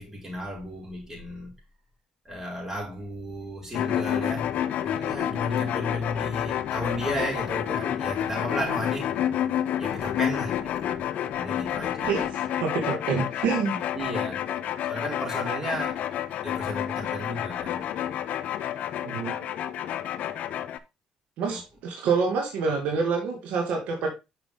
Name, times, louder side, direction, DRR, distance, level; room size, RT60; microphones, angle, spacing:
voice 1, 0.0-1.5 2.2-4.5 4.8-9.2 9.8-11.0 11.3-12.2 13.9-14.4 14.9-16.0 16.4-17.9 21.5-21.6, equal, 20° right, 4.9 m, -34 dB
sound 1, 3.7-20.8, left 10 dB, 70° left, 0.6 m, -29 dB
voice 2, 12.6-13.8 19.0-19.5 21.4-24.1, right 5 dB, 80° right, 1.9 m, -27 dB
6.2 x 5.9 x 3.6 m
supercardioid pair, 75°, 2 cm